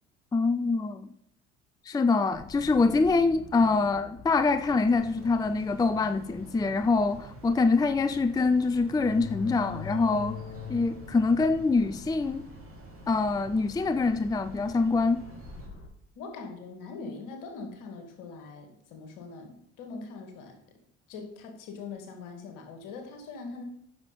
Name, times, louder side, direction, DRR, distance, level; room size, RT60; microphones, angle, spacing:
voice 1, 0.3-1.1 1.9-10.4 10.7-12.5 13.1-15.2, left 3 dB, 10° left, 0.5 m, -25 dB
sound 1, 2.3-15.9, left 6 dB, 45° left, 2.4 m, -45 dB
sound 2, 4.5-15.7, right 6 dB, 40° right, 3.1 m, -49 dB
voice 2, 16.2-20.6 21.1-23.6, left 4 dB, 65° left, 2.2 m, -42 dB
9.6 x 6.6 x 5.3 m
figure-of-eight pair, 55°, 35 cm